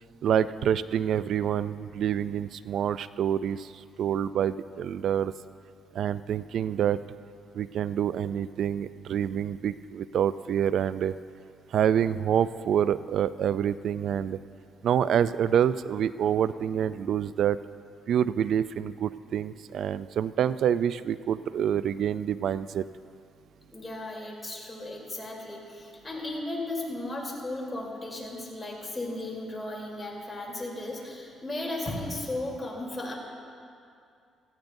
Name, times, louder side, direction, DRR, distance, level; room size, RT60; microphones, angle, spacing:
voice 1, 0.2-5.3 5.9-7.0 7.5-11.1 11.7-14.4 14.8-17.6 18.1-22.8, right 9 dB, 70° right, 15 dB, 0.3 m, -27 dB
voice 2, 23.7-33.1, left 2 dB, 20° left, -2 dB, 3.3 m, -35 dB
18.0 x 14.5 x 2.6 m, 2.4 s
cardioid pair, 90°, 0 cm